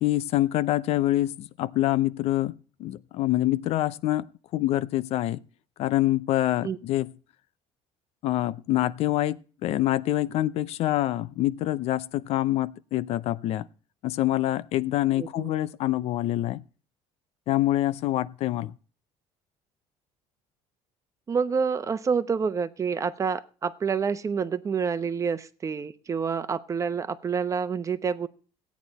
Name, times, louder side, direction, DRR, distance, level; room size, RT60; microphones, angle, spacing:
voice 1, 0.0-2.5 2.8-4.3 4.5-5.4 5.8-7.1 8.2-13.7 14.0-16.6 17.5-18.7, left 15 dB, 60° left, 0.7 m, -26 dB
voice 2, 15.2-15.5 21.3-28.3, right 6 dB, 25° right, 0.9 m, -28 dB
16.0 x 9.4 x 4.1 m
cardioid pair, 135°, 12 cm